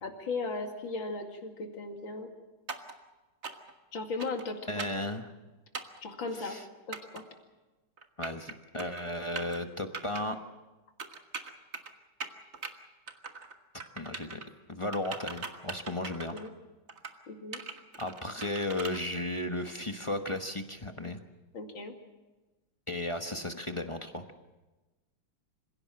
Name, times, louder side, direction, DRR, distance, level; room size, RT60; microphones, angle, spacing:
voice 1, 0.0-2.3 3.9-4.9 6.0-6.6 6.9-7.2 16.3-16.5 17.3-17.6 21.5-21.9, left 3 dB, 80° left, 4 dB, 3.0 m, -37 dB
sound 1, 2.7-2.9 3.4-3.7 4.2-4.5 4.8-5.0 5.7-6.0 6.9-7.2 8.0-8.5 8.8-9.0 9.4-9.6 9.9-10.2 11.0-11.9 12.2-12.7 13.1-13.5 13.8-14.5 14.9-16.5 16.9-17.2 17.5-19.0, right 4 dB, 35° right, 1.7 m, -40 dB
voice 2, 4.7-5.3 6.4-6.6 8.2-10.4 14.0-14.4 14.7-16.3 18.0-21.2 22.9-24.3, left 1 dB, 20° left, 6 dB, 0.9 m, -35 dB
26.0 x 16.5 x 7.7 m, 1.2 s
omnidirectional pair, 2.1 m